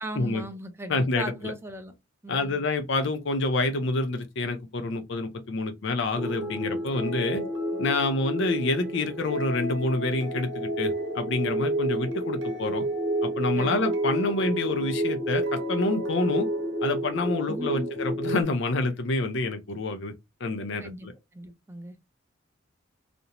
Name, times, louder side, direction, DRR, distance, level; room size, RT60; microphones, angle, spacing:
voice 1, 0.0-1.9 2.2-2.6 7.3-7.5 13.6-13.9 17.5-17.9 20.8-21.1 21.3-22.0, right 1 dB, 10° right, 0.4 m, -38 dB
voice 2, 0.9-1.5 2.3-7.4 7.8-12.8 13.2-16.5 16.8-20.1 20.4-21.1, left 2 dB, 65° left, 0.6 m, -27 dB
sound 1, 6.1-18.4, right 1 dB, 65° right, 0.8 m, -30 dB
2.5 x 2.1 x 2.8 m
head